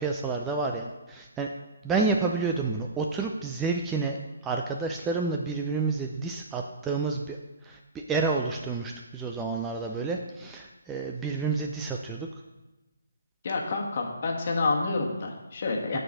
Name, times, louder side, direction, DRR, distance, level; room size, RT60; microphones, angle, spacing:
voice 1, 0.0-1.5 1.8-4.2 4.4-7.4 7.6-12.3 15.9-16.0, right 4 dB, 10° right, 2 dB, 0.4 m, -29 dB
voice 2, 13.4-16.0, left 3 dB, 40° left, 1 dB, 1.3 m, -28 dB
6.1 x 4.7 x 6.3 m, 1.1 s
figure-of-eight pair, 160°, 0 cm